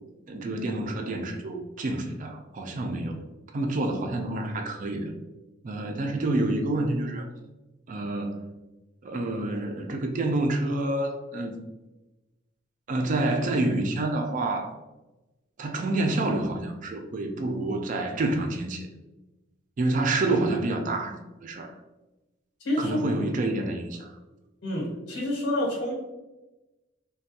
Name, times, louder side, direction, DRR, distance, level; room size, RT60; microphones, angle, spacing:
voice 1, 0.3-3.2 3.5-5.1 5.6-7.3 7.9-8.5 9.0-11.6 12.9-14.7 15.6-18.9 19.8-21.7 22.8-24.2, right 2 dB, 40° right, 3 dB, 0.4 m, -28 dB
voice 2, 22.6-23.0 24.6-25.9, left 1 dB, 90° left, -4 dB, 1.1 m, -28 dB
3.3 x 2.2 x 2.6 m, 1.1 s
head